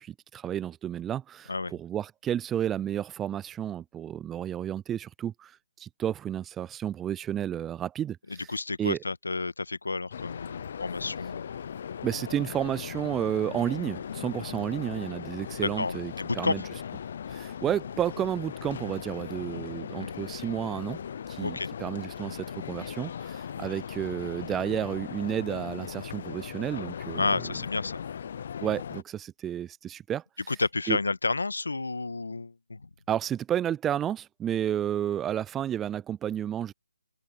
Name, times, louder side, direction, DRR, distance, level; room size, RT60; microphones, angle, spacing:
voice 1, 0.0-8.5 8.8-9.0 12.0-16.6 17.3-21.0 21.3-27.2 28.6-30.2 30.9-31.0 33.1-36.7, right 10 dB, 10° right, 0.3 m, -31 dB
voice 2, 8.5-11.5 15.6-16.7 20.0-20.2 21.4-21.7 27.1-28.0 30.5-32.9, left 3 dB, 85° left, 1.4 m, -31 dB
sound 1, 10.1-29.0, left 8 dB, 40° left, 0.5 m, -38 dB
open air
hypercardioid pair, 165°, 0 cm